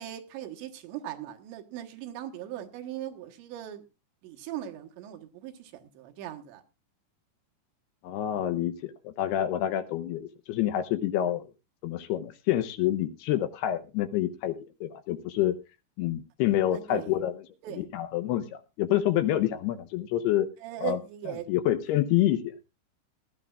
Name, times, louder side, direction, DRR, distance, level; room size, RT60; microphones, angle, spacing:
voice 1, 0.0-3.8 4.2-6.6 16.7-17.1 17.6-17.9 20.6-21.5, right 12 dB, 80° right, 3.5 m, -39 dB
voice 2, 8.0-11.5 11.8-15.6 16.0-17.4 17.7-20.5 20.8-21.0 21.5-22.4, left 12 dB, 75° left, 2.6 m, -27 dB
19.0 x 12.5 x 2.4 m
omnidirectional pair, 5.1 m